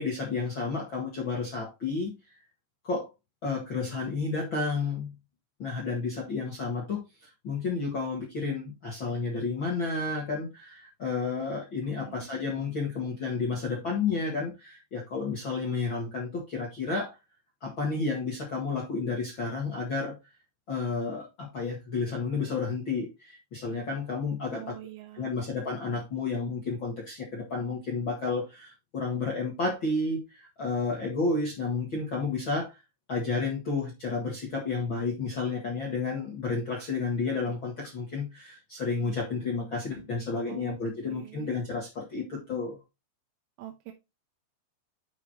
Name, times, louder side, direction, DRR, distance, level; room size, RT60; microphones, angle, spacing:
voice 1, 0.0-2.1 2.8-3.1 3.4-5.2 5.6-17.2 17.6-20.2 20.7-24.7 25.1-32.8 33.1-42.8, left 4 dB, 70° left, 1.1 m, -31 dB
voice 2, 11.9-12.3 24.5-25.4 40.5-40.8 41.1-41.6 43.6-43.9, right 13 dB, 85° right, 3.4 m, -45 dB
11.5 x 4.7 x 2.8 m
omnidirectional pair, 5.5 m